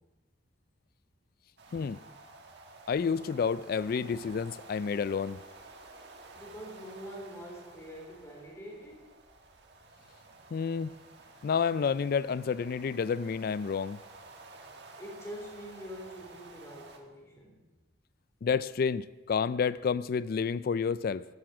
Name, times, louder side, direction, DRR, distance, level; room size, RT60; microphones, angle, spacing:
sound 1, 1.6-17.0, right 2 dB, 60° right, 1.6 m, -52 dB
voice 1, 2.9-5.4 10.5-10.9 11.4-14.0 18.4-21.2, left 6 dB, 50° left, 0.3 m, -30 dB
voice 2, 6.3-9.1 15.0-17.6, equal, 15° left, 3.8 m, -45 dB
12.0 x 11.5 x 6.0 m
head